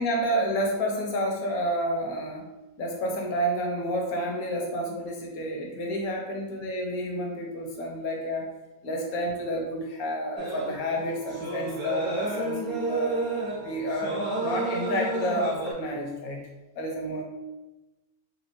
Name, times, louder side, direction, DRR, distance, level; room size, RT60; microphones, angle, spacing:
voice 1, 0.0-2.5 2.8-8.5 8.8-13.2 13.6-16.4 16.8-17.2, equal, 75° left, 0 dB, 1.3 m, -30 dB
sound 1, 10.4-15.7, right 2 dB, 20° right, 0.8 m, -31 dB
4.1 x 3.5 x 3.1 m, 1.1 s
omnidirectional pair, 1.5 m